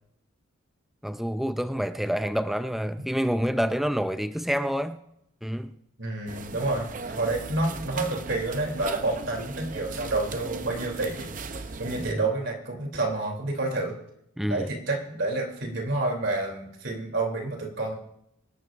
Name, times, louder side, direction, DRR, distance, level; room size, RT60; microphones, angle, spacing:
voice 1, 1.0-5.0 5.4-5.7 12.0-12.3 14.4-14.7, equal, ahead, 9 dB, 0.4 m, -28 dB
voice 2, 6.0-13.9 14.5-17.9, right 2 dB, 65° right, 1 dB, 3.1 m, -29 dB
sound 1, 6.3-12.1, right 3 dB, 40° right, 0.6 m, -38 dB
25.0 x 12.5 x 2.6 m, 0.79 s
head